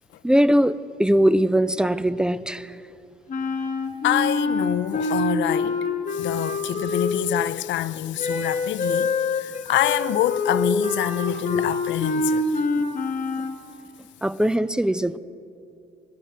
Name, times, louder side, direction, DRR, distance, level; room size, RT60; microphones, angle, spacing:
voice 1, 0.2-2.8 14.2-15.2, equal, 5° right, 0.3 m, -21 dB
Wind instrument woodwind instrument, 3.3-7.5 8.2-13.6, left 3 dB, 40° left, 1.2 m, -26 dB
voice 2, 4.0-5.8 6.1-12.6, left 13 dB, 70° left, 0.4 m, -26 dB
10.5 x 9.5 x 7.5 m
cardioid pair, 90°, 20 cm